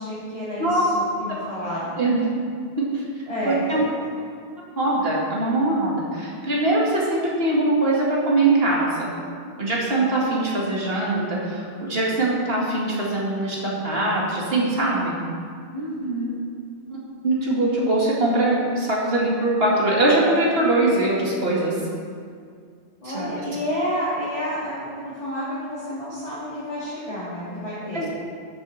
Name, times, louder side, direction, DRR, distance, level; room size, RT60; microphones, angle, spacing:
voice 1, 0.0-1.9 3.3-3.9 15.7-16.4 23.0-28.1, equal, 30° left, -12 dB, 2.8 m, -30 dB
voice 2, 3.4-3.8 4.8-9.1 9.6-15.1 16.9-17.0 17.2-21.8 23.0-23.3 27.9-28.1, right 2 dB, 65° right, -5 dB, 2.4 m, -22 dB
13.0 x 7.5 x 4.2 m, 2.2 s
omnidirectional pair, 1.1 m